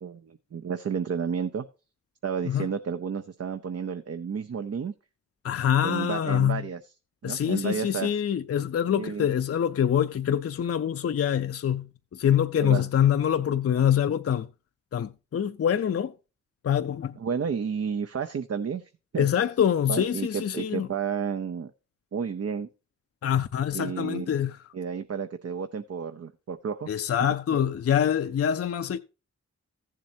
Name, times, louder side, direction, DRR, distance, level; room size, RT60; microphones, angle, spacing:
voice 1, 0.0-1.6 2.2-4.9 5.8-6.9 7.2-8.2 9.0-9.3 12.6-12.9 17.2-19.3 19.9-21.7 22.1-22.7 23.7-24.3 24.7-26.9, right 6 dB, 55° right, 0.6 m, -31 dB
voice 2, 5.4-6.6 7.2-11.9 12.1-14.5 14.9-16.1 16.6-17.1 19.2-20.9 23.2-24.6 26.9-29.0, left 9 dB, 55° left, 0.5 m, -25 dB
14.0 x 7.4 x 2.7 m
cardioid pair, 45°, 30 cm